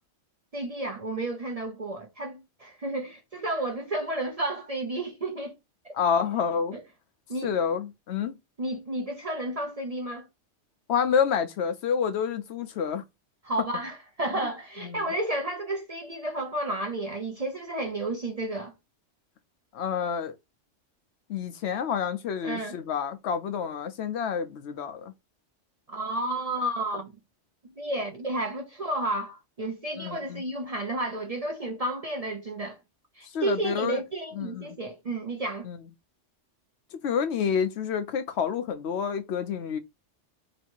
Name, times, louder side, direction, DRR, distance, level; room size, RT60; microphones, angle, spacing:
voice 1, 0.5-5.5 5.8-5.9 6.7-6.8 7.3-7.5 8.6-10.3 13.4-18.7 22.4-22.8 25.9-27.1 27.6-32.8 33.1-35.7, right 1 dB, 40° right, 0.6 m, -32 dB
voice 2, 5.9-6.7 7.4-8.4 10.9-13.0 14.3-14.5 14.8-15.0 19.7-20.3 21.3-25.1 30.0-30.4 33.3-34.0 34.4-34.8 35.6-35.8 37.0-39.8, left 7 dB, 70° left, 0.9 m, -28 dB
3.1 x 2.8 x 4.3 m
omnidirectional pair, 1.2 m